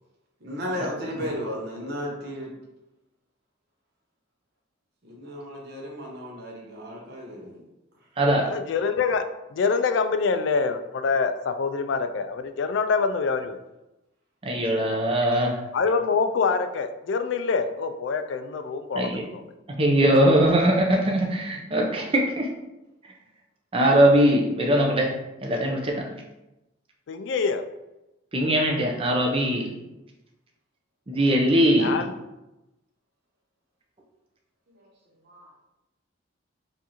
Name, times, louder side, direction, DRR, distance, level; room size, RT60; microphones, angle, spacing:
voice 1, 0.4-2.5 5.0-7.6 34.7-34.9 35.2-35.5, equal, 55° right, -2 dB, 0.8 m, -34 dB
voice 2, 8.4-9.2 9.5-13.6 15.7-19.4 27.1-27.6 31.8-32.1, left 5 dB, 65° left, 9 dB, 0.3 m, -25 dB
voice 3, 14.4-15.6 18.9-19.2 19.8-22.5 23.7-25.1 25.4-26.1 28.3-29.8 31.1-32.0, right 1 dB, 30° right, 0 dB, 0.6 m, -21 dB
4.5 x 2.6 x 2.9 m, 0.96 s
head